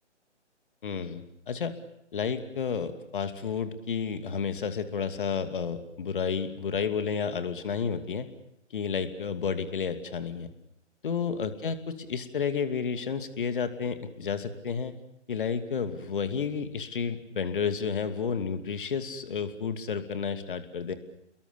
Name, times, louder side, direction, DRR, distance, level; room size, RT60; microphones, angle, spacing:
voice 1, 0.8-1.7 2.1-8.3 8.7-10.5 11.0-14.9 15.3-20.9, left 6 dB, 45° left, 10 dB, 2.6 m, -31 dB
29.5 x 22.0 x 7.1 m, 0.80 s
figure-of-eight pair, 145°, 36 cm